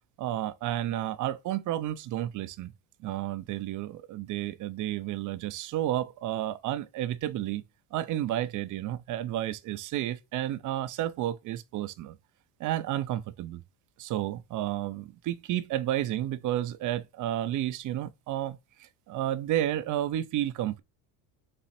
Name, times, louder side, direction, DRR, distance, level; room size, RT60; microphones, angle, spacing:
voice 1, 0.2-2.7 3.0-7.6 7.9-12.2 12.6-13.6 14.0-20.8, right 13 dB, 45° right, 0.5 m, -31 dB
4.2 x 2.4 x 4.1 m
supercardioid pair, 100°, 45 cm